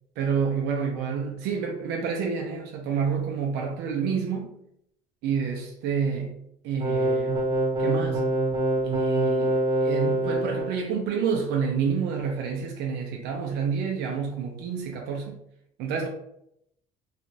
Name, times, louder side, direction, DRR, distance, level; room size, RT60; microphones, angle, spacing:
voice 1, 0.2-4.5 5.2-6.3 6.6-7.4 7.8-8.3 8.8-15.4 15.8-16.1, right 6 dB, 90° right, 0.5 m, -28 dB
sound 1, 6.8-10.7, right 1 dB, 30° right, 0.8 m, -25 dB
2.9 x 2.4 x 2.6 m
cardioid pair, 110°, 17 cm